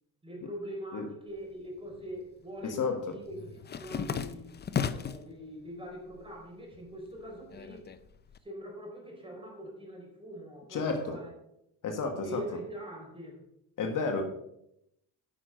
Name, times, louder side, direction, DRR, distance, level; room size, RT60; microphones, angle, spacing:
voice 1, 0.2-3.4 3.8-4.6 4.9-7.9 8.4-11.3 12.2-13.4, equal, 15° right, 0 dB, 3.9 m, -43 dB
sound 1, 1.4-2.2 2.5-5.3 5.8-6.4 6.7-8.4, left 7 dB, 25° left, 0.6 m, -36 dB
voice 2, 2.6-3.1 10.7-11.2 11.8-12.4 13.8-14.2, left 4 dB, 55° left, 4 dB, 1.5 m, -31 dB
10.0 x 6.0 x 5.1 m, 0.79 s
cardioid pair, 105°, 38 cm